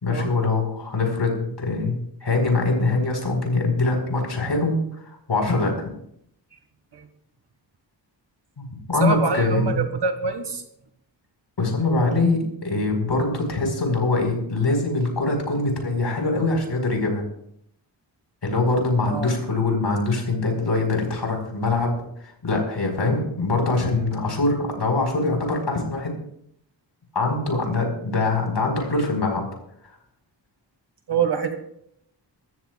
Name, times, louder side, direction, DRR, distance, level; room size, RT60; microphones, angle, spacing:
voice 1, 0.0-4.8 5.3-5.7 8.6-9.6 11.6-17.2 18.4-21.9 22.4-26.1 27.1-29.5, left 3 dB, 70° left, 2 dB, 4.7 m, -23 dB
voice 2, 9.0-10.6 19.1-19.4 31.1-31.6, right 5 dB, 65° right, 7 dB, 1.9 m, -24 dB
24.0 x 14.0 x 2.4 m, 0.71 s
wide cardioid pair, 85°, 44 cm